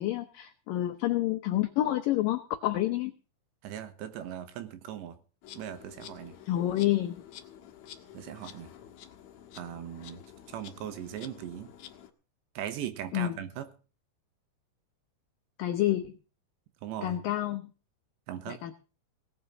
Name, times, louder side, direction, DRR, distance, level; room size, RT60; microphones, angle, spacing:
voice 1, 0.0-3.1 6.5-7.2 13.1-13.3 15.6-16.1 17.0-17.7 18.5-18.7, left 14 dB, 80° left, 8 dB, 2.0 m, -28 dB
voice 2, 3.6-5.2 5.6-6.4 8.1-8.7 9.6-10.2 10.5-11.7 12.6-13.7 16.8-17.2 18.3-18.6, right 10 dB, 80° right, 10 dB, 3.5 m, -39 dB
Insect, 5.4-12.1, left 10 dB, 60° left, 1.9 m, -50 dB
18.0 x 6.9 x 7.6 m, 0.37 s
omnidirectional pair, 5.1 m